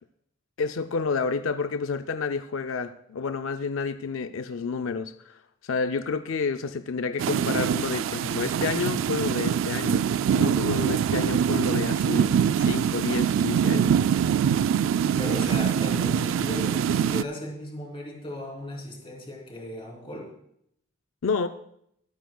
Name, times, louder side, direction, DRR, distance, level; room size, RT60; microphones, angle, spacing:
voice 1, 0.6-10.0 10.3-12.3 12.6-13.9 21.2-21.5, left 5 dB, 85° left, 9 dB, 0.5 m, -29 dB
sound 1, 7.2-17.2, right 8 dB, 80° right, 0.3 m, -24 dB
voice 2, 15.2-20.3, left 1 dB, 25° left, -1 dB, 3.2 m, -36 dB
23.5 x 9.2 x 2.3 m, 0.72 s
head